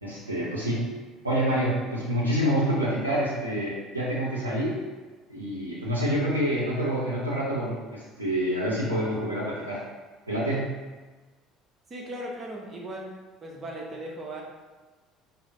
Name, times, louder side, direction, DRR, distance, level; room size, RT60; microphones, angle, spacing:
voice 1, 0.0-0.9 1.2-4.8 5.3-9.8 10.3-10.7, equal, 90° right, -7 dB, 0.5 m, -27 dB
voice 2, 11.9-13.1 13.4-14.4, right 1 dB, 35° right, -2 dB, 0.8 m, -37 dB
5.0 x 2.0 x 2.6 m, 1.3 s
figure-of-eight pair, 60°, 0 cm